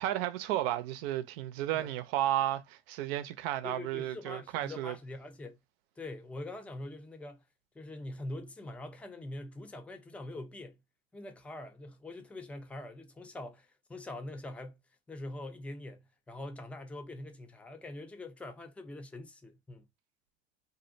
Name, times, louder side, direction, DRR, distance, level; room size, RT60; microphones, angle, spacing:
voice 1, 0.0-4.9, right 13 dB, 70° right, 0.5 m, -33 dB
voice 2, 3.6-5.6 6.0-7.4 7.8-10.8 11.1-14.8 15.1-19.9, left 2 dB, 5° left, 0.4 m, -44 dB
2.5 x 2.0 x 2.5 m
hypercardioid pair, 80°, 31 cm